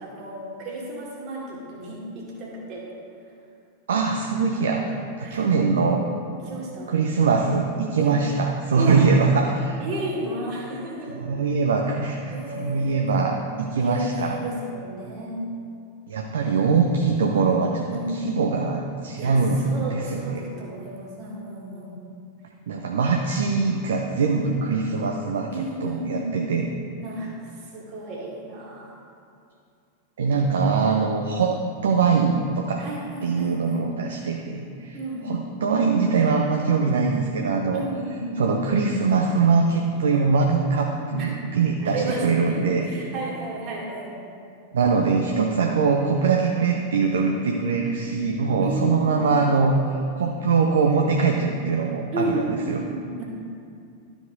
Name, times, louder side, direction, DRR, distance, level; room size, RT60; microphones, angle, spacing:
voice 1, 0.0-2.9 5.2-5.5 6.4-6.9 8.0-8.2 8.8-9.0 9.8-11.1 12.3-13.1 13.8-15.5 17.9-18.4 19.2-22.0 25.5-26.4 27.0-27.4 27.7-29.0 32.8-33.9 34.9-35.3 37.7-38.4 41.2-41.3 41.8-44.2 47.4-48.1 48.6-49.2 52.1-53.2, right 1 dB, 40° right, -3 dB, 2.1 m, -33 dB
voice 2, 3.9-4.9 5.3-6.0 6.9-9.8 11.1-14.4 16.1-20.4 22.7-26.7 30.2-31.6 31.8-32.8 33.2-35.0 35.2-37.8 38.4-42.9 44.7-52.8, right 4 dB, 65° right, 2 dB, 0.6 m, -22 dB
12.5 x 4.9 x 3.9 m, 2.4 s
figure-of-eight pair, 90°, 0 cm